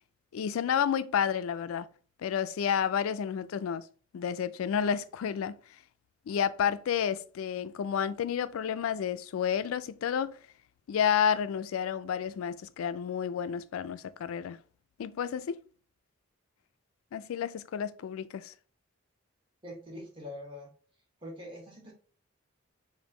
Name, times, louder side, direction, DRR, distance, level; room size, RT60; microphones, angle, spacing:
voice 1, 0.3-1.9 2.2-3.9 4.1-5.6 6.3-10.4 10.9-14.6 15.0-15.6 17.1-18.5, left 8 dB, 90° left, 0.3 m, -30 dB
voice 2, 19.6-20.7 21.2-21.9, left 1 dB, 25° right, 1.3 m, -43 dB
3.5 x 2.6 x 3.8 m
head